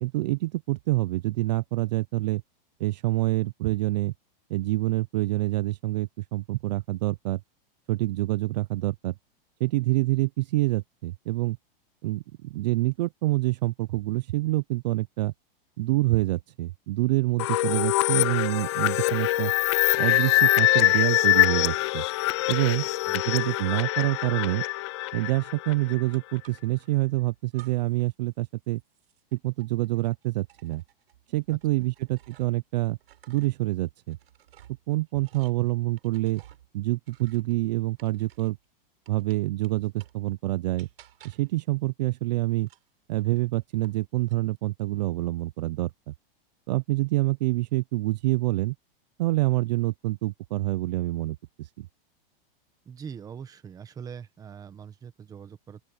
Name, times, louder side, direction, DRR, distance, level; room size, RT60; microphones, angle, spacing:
voice 1, 0.0-2.4 2.8-4.1 4.5-7.4 7.9-9.1 9.6-11.6 12.0-15.3 15.8-19.5 20.0-22.0 22.5-22.8 23.1-24.6 25.1-28.8 29.3-30.8 31.3-33.0 33.3-34.2 34.9-36.4 36.7-38.6 39.1-40.9 41.2-42.7 43.1-46.1 46.7-48.7 49.2-51.9, right 18 dB, 50° right, 0.4 m, -27 dB
sound 1, 17.4-26.0, left 17 dB, 30° left, 0.4 m, -24 dB
voice 2, 22.8-23.2 31.5-31.6 52.8-55.8, right 7 dB, 10° right, 1.2 m, -42 dB
sound 2, 26.1-26.9 27.5-28.1 28.4-32.7 33.0-38.6 39.0-40.3 40.8-41.6 42.6-44.0 44.3-44.9, right 12 dB, 85° right, 6.5 m, -56 dB
open air
supercardioid pair, 165°, 29 cm